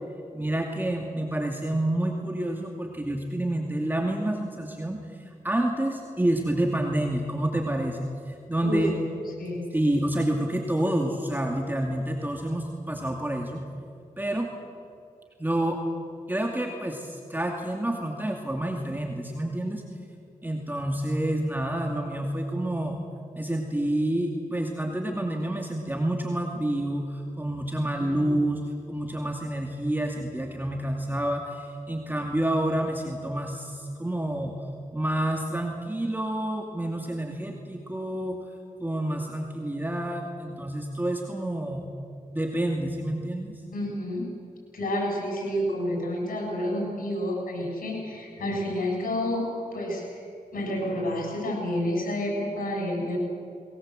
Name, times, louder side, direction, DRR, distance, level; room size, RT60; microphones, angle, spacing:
voice 1, 0.3-8.9 9.7-13.7 14.2-14.5 15.4-15.8 16.3-19.8 20.4-23.0 23.4-34.5 34.9-38.4 38.8-41.8 42.3-43.6, right 1 dB, 15° right, 1 dB, 2.4 m, -28 dB
voice 2, 28.0-28.4 43.7-44.3 44.7-50.2 50.5-53.2, left 1 dB, 90° left, 0 dB, 7.3 m, -29 dB
22.0 x 19.5 x 7.8 m, 2.4 s
cardioid pair, 60°, 14 cm